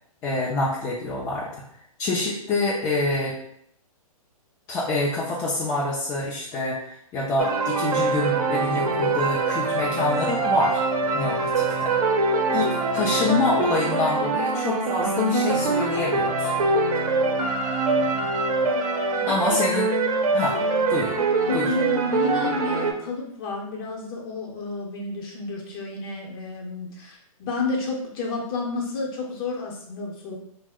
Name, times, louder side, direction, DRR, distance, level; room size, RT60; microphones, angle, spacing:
voice 1, 0.2-1.6 2.0-3.4 4.7-10.8 11.1-11.9 12.5-16.5 19.3-19.9 20.3-20.6 20.9-21.1 21.5-21.7, left 2 dB, 15° left, -6 dB, 0.4 m, -26 dB
sound 1, 7.4-22.9, right 3 dB, 80° right, 0.7 m, -24 dB
voice 2, 12.5-12.8 17.9-18.3 19.1-19.6 21.4-30.4, left 3 dB, 40° left, -1 dB, 0.8 m, -31 dB
2.8 x 2.1 x 3.4 m, 0.69 s
hypercardioid pair, 140°, 19 cm